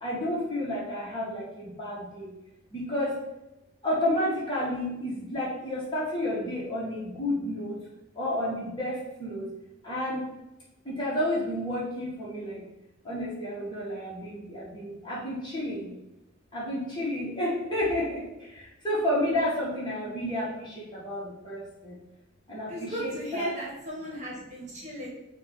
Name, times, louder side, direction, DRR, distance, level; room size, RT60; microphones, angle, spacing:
voice 1, 0.0-2.3 2.7-3.2 3.8-7.8 8.2-9.5 9.8-10.2 10.8-12.6 13.0-15.9 16.5-18.2 18.5-21.9 22.5-23.5, left 1 dB, 25° left, -7 dB, 2.4 m, -31 dB
voice 2, 22.7-25.1, equal, 35° right, -4 dB, 1.7 m, -35 dB
6.4 x 3.1 x 5.4 m, 0.92 s
head